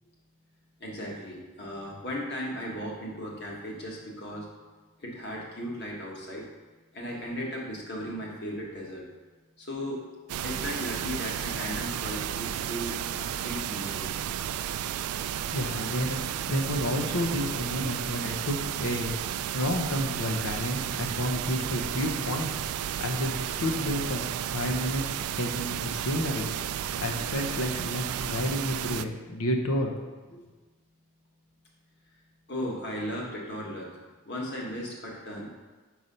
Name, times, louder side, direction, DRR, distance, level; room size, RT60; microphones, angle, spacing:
voice 1, 0.8-4.4 5.0-6.4 6.9-9.0 9.7-10.0 10.4-12.9 13.2-14.1 32.5-33.9 34.3-35.5, equal, 50° left, -2 dB, 1.4 m, -36 dB
sound 1, 10.3-29.1, right 10 dB, 85° right, 0.3 m, -33 dB
voice 2, 15.3-19.1 19.5-22.5 22.8-26.5 27.0-29.9 30.3-30.5, left 1 dB, 80° left, 2 dB, 0.9 m, -31 dB
5.6 x 4.7 x 5.3 m, 1.3 s
head